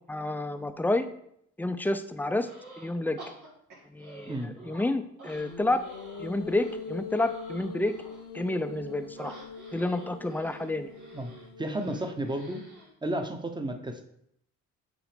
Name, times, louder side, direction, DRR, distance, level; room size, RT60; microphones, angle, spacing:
voice 1, 0.1-1.1 1.6-2.5 2.8-3.2 3.9-5.9 6.2-7.9 8.3-9.3 9.7-10.9, left 2 dB, 5° left, 10 dB, 0.5 m, -29 dB
sound 1, 2.4-2.9 3.2-4.9 5.2-8.3 9.2-12.9, right 2 dB, 85° right, 2.0 m, -49 dB
sound 2, 5.3-12.7, left 5 dB, 50° left, 0.8 m, -42 dB
voice 2, 11.6-12.6 13.0-14.0, right 1 dB, 15° right, 6 dB, 0.9 m, -32 dB
6.2 x 4.0 x 5.1 m, 0.72 s
cardioid pair, 90°, 30 cm